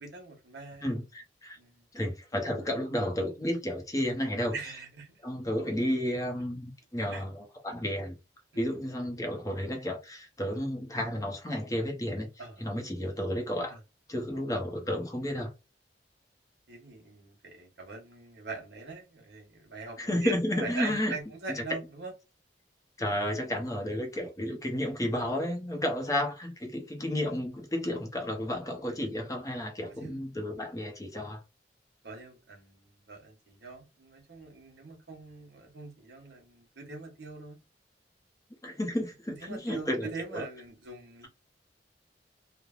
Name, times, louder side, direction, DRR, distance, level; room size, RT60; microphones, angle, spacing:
voice 1, 0.0-0.9 1.6-1.9 4.5-5.2 7.1-7.2 8.5-8.6 12.4-12.7 13.7-13.8 14.3-14.5 16.7-22.1 29.8-30.2 32.0-37.6 39.3-41.3, right 3 dB, 70° right, 1.0 m, -42 dB
voice 2, 0.8-1.6 1.9-4.5 5.2-8.1 8.6-12.3 12.6-13.8 14.1-15.5 20.0-21.2 23.0-31.4 38.6-40.4, left 1 dB, 20° left, 0.7 m, -32 dB
3.1 x 2.1 x 2.4 m
head